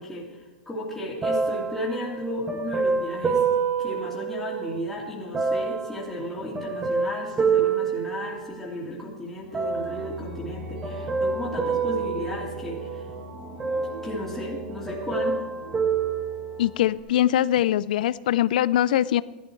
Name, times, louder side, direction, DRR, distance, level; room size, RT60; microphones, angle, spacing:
voice 1, 0.0-3.4 3.8-13.1 14.0-15.4, left 1 dB, 5° left, -6 dB, 2.7 m, -34 dB
sound 1, 1.2-4.8 5.3-8.9 9.5-10.2 10.8-13.1 13.6-14.6 14.9-16.9 17.6-17.7, right 5 dB, 15° right, 1.3 m, -28 dB
sound 2, 9.4-17.0, right 1 dB, 70° right, 3.8 m, -40 dB
voice 2, 16.6-19.2, left 12 dB, 65° left, 18 dB, 0.4 m, -22 dB
14.5 x 11.5 x 4.7 m, 1.1 s
hypercardioid pair, 125°, 5 cm